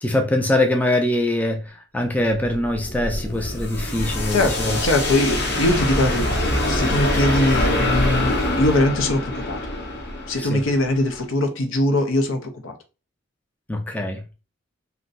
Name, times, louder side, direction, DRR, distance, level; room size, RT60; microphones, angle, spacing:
voice 1, 0.0-4.8 10.4-10.6 13.7-14.2, left 1 dB, 10° left, 0.4 m, -23 dB
sound 1, 2.3-11.2, left 1 dB, 55° left, 0.9 m, -24 dB
voice 2, 4.3-9.6 10.3-12.7, left 1 dB, 90° left, 0.7 m, -22 dB
2.6 x 2.2 x 3.8 m
head